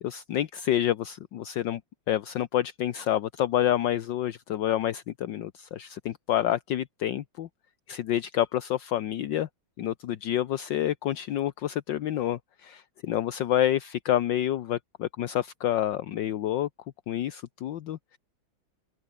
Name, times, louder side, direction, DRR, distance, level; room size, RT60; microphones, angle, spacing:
voice 1, 0.0-1.8 2.1-7.5 7.9-9.5 9.8-16.7 17.1-18.2, left 11 dB, 70° left, 1.6 m, -28 dB
open air
omnidirectional pair, 2.2 m